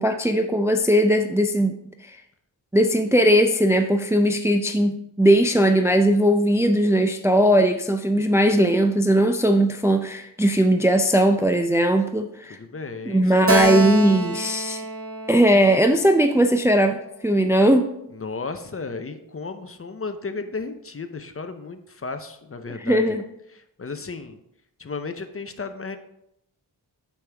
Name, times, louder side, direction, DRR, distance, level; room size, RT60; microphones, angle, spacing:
voice 1, 0.0-1.8 2.1-2.2 2.7-12.6 13.1-14.8 15.3-17.9 22.8-23.2, right 1 dB, 5° right, 6 dB, 0.4 m, -19 dB
voice 2, 12.5-13.7 18.1-23.2 23.5-24.4 24.8-26.0, left 4 dB, 35° left, 8 dB, 0.6 m, -34 dB
Keyboard (musical), 13.5-16.9, right 1 dB, 35° right, 0.9 m, -27 dB
8.5 x 6.3 x 3.4 m, 0.80 s
wide cardioid pair, 100°, 41 cm